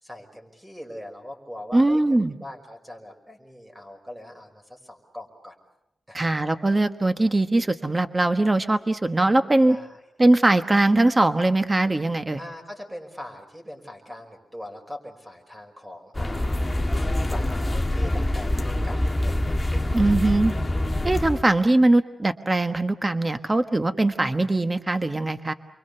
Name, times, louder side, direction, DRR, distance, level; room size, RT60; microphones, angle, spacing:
voice 1, 0.0-5.5 6.1-6.3 9.7-10.0 12.4-17.0 17.3-20.2, left 1 dB, 10° right, 3 dB, 5.5 m, -41 dB
voice 2, 1.7-2.4 6.1-9.8 10.2-12.4 19.9-20.5 21.0-25.5, right 2 dB, 25° right, 9 dB, 1.3 m, -21 dB
sound 1, 16.2-21.4, left 1 dB, 20° left, 1.7 m, -25 dB
29.5 x 23.5 x 6.8 m, 0.85 s
wide cardioid pair, 95°, 0 cm